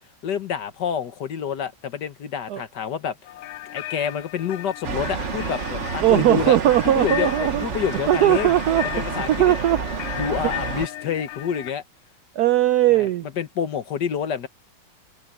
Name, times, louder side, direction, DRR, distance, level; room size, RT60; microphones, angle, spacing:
voice 1, 0.2-3.2 3.7-6.6 6.9-8.5 8.9-9.6 10.2-11.8 12.9-14.5, left 7 dB, 60° left, 1.7 m, -28 dB
sound 1, 3.3-11.7, left 13 dB, 85° left, 1.4 m, -36 dB
sound 2, 4.8-10.9, right 5 dB, 40° right, 1.3 m, -30 dB
voice 2, 6.0-7.7 8.1-9.8 12.4-13.3, right 13 dB, 80° right, 0.9 m, -19 dB
omnidirectional pair, 2.2 m